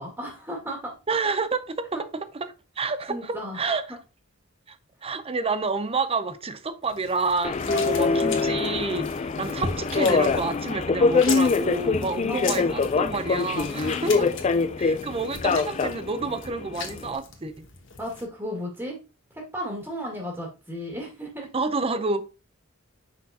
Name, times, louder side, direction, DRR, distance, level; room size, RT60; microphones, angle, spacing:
voice 1, 0.0-0.9 1.9-2.0 3.1-3.6 12.3-12.8 13.8-14.4 18.0-19.0 19.3-21.5, equal, 15° right, 2.0 m, -34 dB
voice 2, 1.1-4.0 4.7-4.8 5.0-14.3 14.8-17.6 21.5-22.2, right 3 dB, 30° right, 0.6 m, -29 dB
sound 1, 6.8-18.2, left 5 dB, 65° left, 1.4 m, -38 dB
Subway metro underground, 7.4-17.2, left 4 dB, 35° left, 0.4 m, -24 dB
6.1 x 5.9 x 2.8 m
head